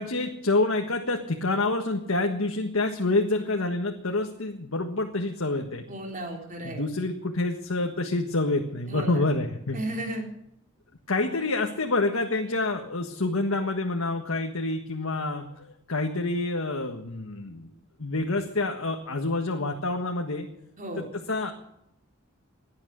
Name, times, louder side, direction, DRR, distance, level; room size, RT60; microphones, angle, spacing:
voice 1, 0.0-5.9 6.6-9.8 11.1-17.7 18.0-20.5 21.0-21.5, left 2 dB, 90° left, 3 dB, 1.6 m, -27 dB
voice 2, 5.9-6.8 8.9-9.3 9.7-10.3 20.8-21.1, right 1 dB, 40° right, 2 dB, 3.7 m, -34 dB
18.0 x 11.5 x 6.3 m, 0.80 s
head